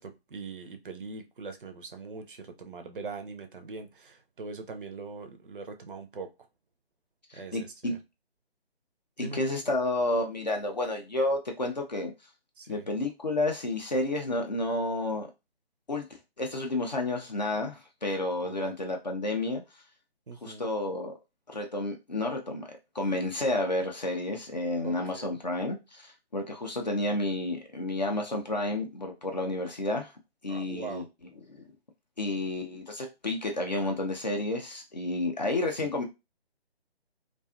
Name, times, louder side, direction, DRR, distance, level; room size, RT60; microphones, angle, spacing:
voice 1, 0.0-6.3 7.3-8.0 9.2-9.4 12.6-12.9 18.4-18.7 20.3-20.6 24.8-25.4 30.5-31.0 35.8-35.9, right 4 dB, 55° right, 0.5 m, -42 dB
voice 2, 7.3-8.0 9.2-12.1 12.7-15.3 15.9-16.1 16.4-19.6 20.4-21.2 21.5-22.7 22.9-30.1 30.4-31.1 31.5-31.7 32.2-36.0, left 2 dB, 40° left, 0.5 m, -30 dB
2.5 x 2.3 x 2.3 m
figure-of-eight pair, 150°, 32 cm